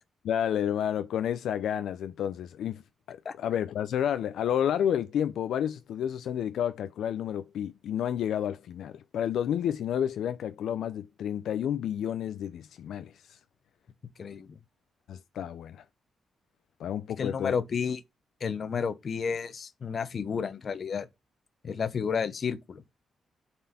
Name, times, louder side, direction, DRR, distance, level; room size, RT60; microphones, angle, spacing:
voice 1, 0.2-2.8 3.1-13.4 15.1-15.8 16.8-17.5, left 9 dB, 80° left, 0.4 m, -30 dB
voice 2, 17.2-18.0 18.4-21.1 21.6-22.8, left 6 dB, 45° left, 0.8 m, -31 dB
7.6 x 4.3 x 4.1 m
cardioid pair, 125°, 0 cm